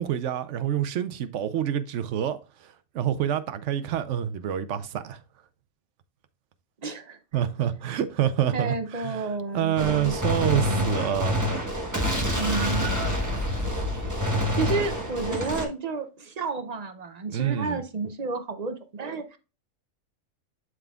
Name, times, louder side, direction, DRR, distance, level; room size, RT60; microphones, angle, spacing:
voice 1, 0.0-2.4 2.9-5.2 7.3-9.2 9.5-11.4 12.0-12.3 17.3-17.8, right 10 dB, 70° right, 0.9 m, -27 dB
voice 2, 6.8-7.2 8.5-10.1 10.4-10.9 12.3-13.0 13.9-14.1 14.6-19.4, right 3 dB, 50° right, 0.5 m, -31 dB
Gunshot gunfire, 9.8-15.6, equal, 15° right, 1.2 m, -27 dB
11.0 x 3.8 x 2.3 m
omnidirectional pair, 1.4 m